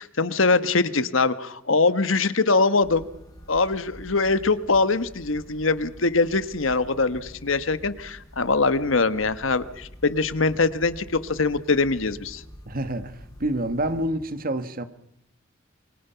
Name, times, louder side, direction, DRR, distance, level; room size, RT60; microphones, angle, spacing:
voice 1, 0.0-3.1 3.5-12.4, left 3 dB, 75° left, 1.3 m, -23 dB
sound 1, 2.8-14.1, equal, 20° left, 5.6 m, -46 dB
voice 2, 12.7-14.8, right 1 dB, 45° right, 1.5 m, -28 dB
27.0 x 24.5 x 5.8 m
head